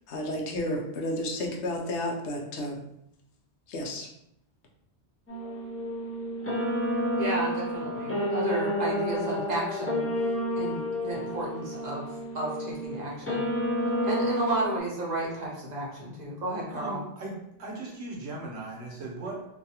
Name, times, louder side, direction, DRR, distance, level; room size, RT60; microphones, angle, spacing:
voice 1, 0.1-2.8 3.7-4.1, left 1 dB, 80° left, 0 dB, 0.9 m, -31 dB
sound 1, 5.3-14.8, equal, 25° left, 0.3 m, -30 dB
voice 2, 7.2-10.1 10.6-13.5 14.0-17.0, right 2 dB, 45° right, -4 dB, 0.7 m, -33 dB
voice 3, 16.7-19.5, right 2 dB, 70° right, -2 dB, 1.0 m, -38 dB
2.6 x 2.3 x 2.7 m, 0.79 s
omnidirectional pair, 1.2 m